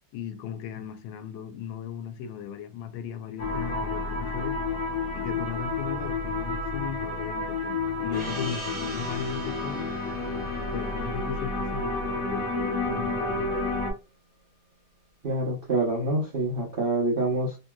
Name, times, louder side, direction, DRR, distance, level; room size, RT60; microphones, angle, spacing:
voice 1, 0.1-4.6 5.1-10.0 10.7-13.7, left 7 dB, 85° left, 1.3 m, -37 dB
sound 1, 3.4-13.9, left 3 dB, 55° left, 1.2 m, -30 dB
Gong, 8.1-13.2, right 1 dB, 30° right, 0.7 m, -42 dB
voice 2, 15.2-17.6, right 2 dB, 75° right, 0.5 m, -26 dB
3.0 x 2.9 x 2.2 m
omnidirectional pair, 2.1 m